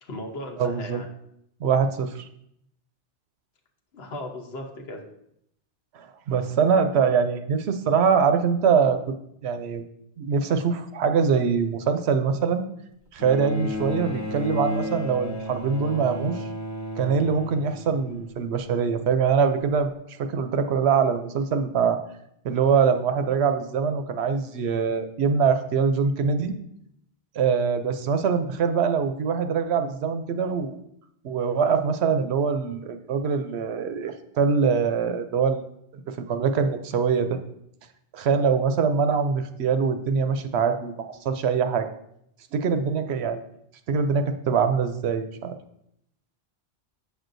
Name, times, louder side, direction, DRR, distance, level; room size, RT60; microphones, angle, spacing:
voice 1, 0.0-1.1 3.9-5.0, left 1 dB, 65° left, 2 dB, 1.2 m, -36 dB
voice 2, 0.6-1.0 1.6-2.3 6.0-9.1 9.4-9.8 10.2-12.6 13.1-16.5 17.0-22.0 22.4-26.5 27.4-30.8 31.2-35.6 36.3-37.4 38.1-41.9 42.5-43.4 43.9-45.6, right 6 dB, 75° right, 8 dB, 0.8 m, -23 dB
Bowed string instrument, 13.2-18.7 19.8-19.9, left 1 dB, 20° left, 0.7 m, -33 dB
8.2 x 6.2 x 2.6 m, 0.75 s
omnidirectional pair, 1.1 m